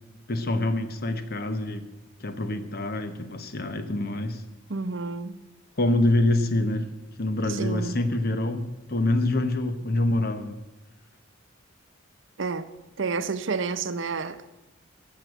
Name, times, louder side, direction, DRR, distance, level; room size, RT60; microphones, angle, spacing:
voice 1, 0.3-1.9 2.2-4.4 5.8-6.9 7.2-10.6, left 1 dB, 50° left, 1.0 m, -26 dB
voice 2, 4.7-5.3 7.5-7.9 12.4-12.7 13.0-14.5, right 4 dB, 70° right, 0.7 m, -30 dB
14.0 x 6.8 x 7.9 m
head